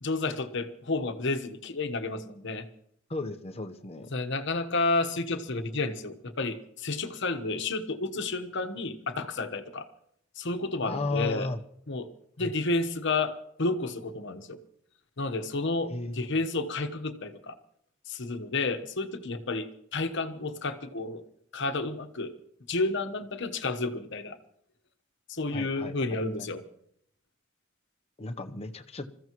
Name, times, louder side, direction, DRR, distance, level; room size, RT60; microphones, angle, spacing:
voice 1, 0.0-2.7 4.1-9.9 10.4-11.5 11.9-12.1 12.4-14.6 15.2-17.5 18.1-21.2 21.5-22.3 22.7-24.4 25.3-26.6, left 3 dB, 60° left, 8 dB, 1.2 m, -31 dB
voice 2, 3.1-4.1 10.8-11.6 12.4-12.5 15.9-16.4 25.5-25.9 26.4-26.5 28.2-29.1, left 2 dB, 30° left, 6 dB, 0.9 m, -34 dB
26.5 x 14.5 x 3.1 m, 0.69 s
head